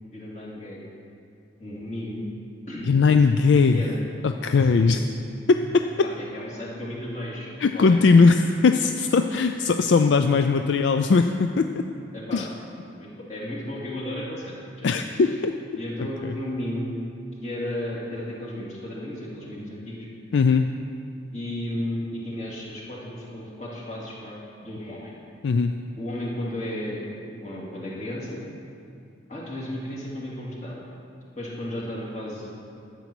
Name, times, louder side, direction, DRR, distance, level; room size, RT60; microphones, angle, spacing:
voice 1, 0.1-0.8 1.6-2.3 2.7-2.9 3.7-4.0 4.7-4.9 6.0-8.0 12.1-12.5 12.9-15.2 15.8-17.0 17.4-20.0 21.3-25.1 26.0-27.1 27.4-28.4 29.3-30.8 31.4-32.5, left 1 dB, 35° left, -5 dB, 2.4 m, -34 dB
voice 2, 2.9-3.8 4.2-5.0 5.5-5.9 7.6-11.8 12.3-12.5 14.8-15.5 16.2-16.3 20.3-20.7 25.4-25.7, left 4 dB, 70° left, 7 dB, 0.4 m, -19 dB
12.0 x 8.4 x 6.1 m, 2.5 s
head